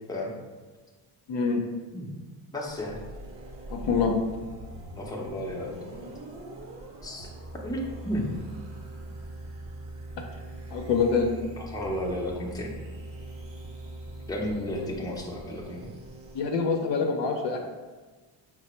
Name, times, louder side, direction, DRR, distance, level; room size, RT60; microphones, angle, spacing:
voice 1, 1.3-1.6 3.7-4.2 10.7-11.3 16.3-17.6, left 5 dB, 60° left, 2 dB, 0.7 m, -25 dB
voice 2, 2.5-3.0 4.9-5.8 7.0-7.3 7.6-7.8 8.0-8.3 11.6-12.7 14.3-15.9, left 1 dB, 10° left, -2 dB, 0.7 m, -33 dB
sound 1, 2.7-16.4, right 1 dB, 30° right, 0.8 m, -42 dB
4.0 x 2.0 x 4.3 m, 1.3 s
supercardioid pair, 80°, 48 cm